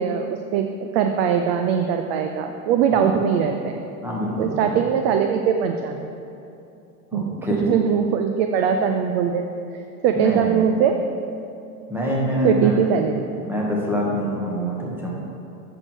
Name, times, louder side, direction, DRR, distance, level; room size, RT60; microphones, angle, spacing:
voice 1, 0.0-3.8 4.4-6.1 7.1-7.2 7.5-9.4 9.7-11.0 12.4-13.2, right 7 dB, 45° right, 5 dB, 0.4 m, -21 dB
voice 2, 4.0-4.8 7.1-7.6 10.1-10.7 11.9-12.7 13.4-15.1, equal, 5° right, -3 dB, 1.3 m, -25 dB
7.7 x 6.4 x 4.4 m, 2.8 s
supercardioid pair, 130°, 47 cm